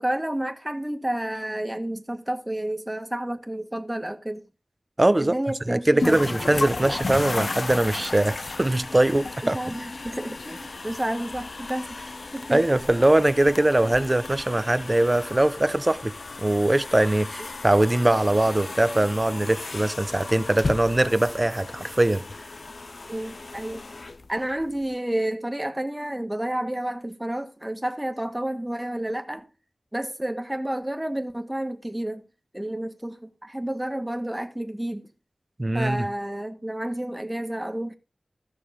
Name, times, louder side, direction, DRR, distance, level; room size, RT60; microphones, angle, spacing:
voice 1, 0.0-4.4 5.2-6.3 9.4-12.7 23.1-23.8 24.3-29.5 29.9-32.2 32.5-35.1 35.7-37.9, right 1 dB, 15° right, 1.6 m, -30 dB
voice 2, 5.0-5.3 5.7-9.6 12.5-16.1 16.4-22.2 35.6-36.1, right 1 dB, 30° right, 0.7 m, -21 dB
sound 1, 6.0-24.9, left 3 dB, 70° left, 0.5 m, -35 dB
15.0 x 6.4 x 3.7 m
wide cardioid pair, 60°, 0 cm